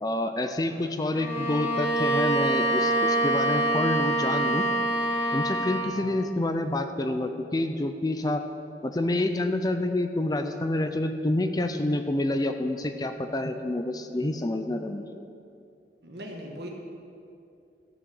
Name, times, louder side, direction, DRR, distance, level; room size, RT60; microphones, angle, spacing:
voice 1, 0.0-4.6 5.3-8.4 8.8-15.1, left 1 dB, 20° left, 7 dB, 0.5 m, -28 dB
Bowed string instrument, 1.1-5.9, right 1 dB, 10° right, 2.9 m, -25 dB
voice 2, 16.0-16.7, equal, 65° right, 1 dB, 1.7 m, -39 dB
13.5 x 6.2 x 7.0 m, 2.5 s
head